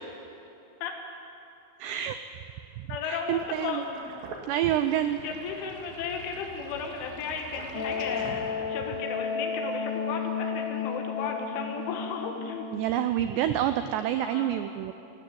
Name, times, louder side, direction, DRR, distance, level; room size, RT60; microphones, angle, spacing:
voice 1, 1.8-2.2 2.8-3.8 4.5-5.2 12.7-14.9, right 11 dB, 85° right, 9 dB, 2.4 m, -28 dB
voice 2, 2.9-4.1 5.2-12.7 14.1-14.5, left 5 dB, 75° left, 2 dB, 4.1 m, -35 dB
Sink (filling or washing), 3.4-9.0, right 4 dB, 65° right, 3.9 m, -44 dB
Wind instrument woodwind instrument, 7.7-13.3, left 6 dB, 35° left, 2.5 m, -33 dB
18.0 x 17.5 x 8.6 m, 2.8 s
omnidirectional pair, 5.6 m